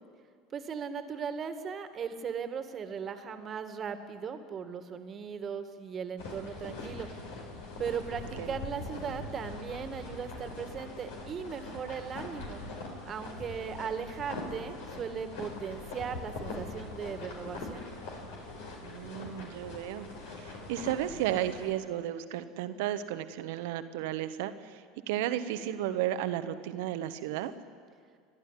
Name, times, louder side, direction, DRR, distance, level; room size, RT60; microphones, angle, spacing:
voice 1, 0.5-7.1 7.8-12.6 13.1-17.9, right 6 dB, 35° right, 9 dB, 2.0 m, -38 dB
sound 1, 6.2-21.7, left 2 dB, 70° left, 5.0 m, -42 dB
voice 2, 18.8-20.1 20.4-27.5, right 12 dB, 65° right, 11 dB, 1.2 m, -33 dB
29.5 x 12.0 x 10.0 m, 2.1 s
hypercardioid pair, 75°, 0 cm